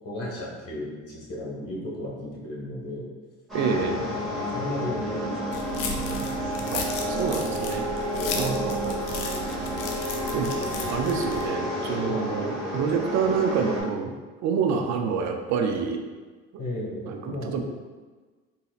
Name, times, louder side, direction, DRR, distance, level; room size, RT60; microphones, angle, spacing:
voice 1, 0.0-3.1 3.8-5.5 5.9-6.7 8.1-8.7 12.1-12.3 16.6-17.6, left 1 dB, 50° left, -5 dB, 1.4 m, -35 dB
sound 1, 3.5-13.8, equal, ahead, 1.2 m, -30 dB
voice 2, 3.5-4.0 6.7-7.8 8.4-8.9 10.3-14.1 14.4-16.0 17.1-17.6, right 6 dB, 65° right, 4 dB, 0.4 m, -27 dB
sound 2, 5.5-11.5, left 4 dB, 80° left, 0.6 m, -35 dB
3.9 x 2.7 x 2.4 m, 1.4 s
cardioid pair, 105°, 30 cm